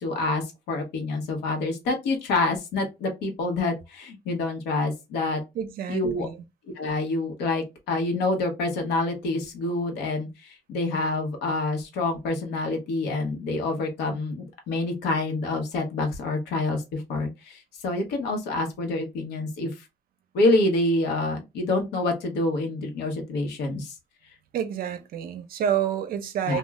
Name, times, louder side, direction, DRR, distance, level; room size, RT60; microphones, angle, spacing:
voice 1, 0.0-5.4 5.9-6.3 6.8-19.7 20.3-23.9 26.5-26.6, left 2 dB, 80° left, 1.0 m, -27 dB
voice 2, 5.5-6.4 24.5-26.6, right 9 dB, 60° right, 0.6 m, -28 dB
2.4 x 2.3 x 3.0 m
cardioid pair, 110°, 17 cm